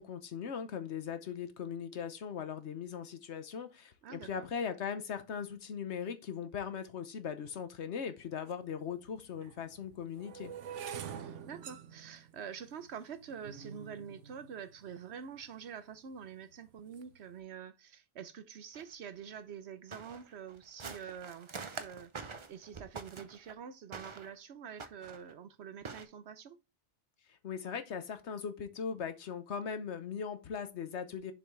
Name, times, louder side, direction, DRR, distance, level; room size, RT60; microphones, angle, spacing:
voice 1, 0.0-10.5 27.4-31.3, left 7 dB, 70° left, 1.2 m, -39 dB
voice 2, 4.0-4.5 11.2-26.6, right 7 dB, 70° right, 1.0 m, -46 dB
sound 1, 8.5-8.6 9.3-15.5 16.2-16.5 16.8-17.2, right 8 dB, 90° right, 1.1 m, -47 dB
sound 2, 18.7-18.8 19.3-19.4 19.9-23.5 23.9-24.3 24.8-25.3 25.8-26.0, right 4 dB, 30° right, 0.6 m, -45 dB
7.0 x 5.7 x 3.2 m
omnidirectional pair, 1.2 m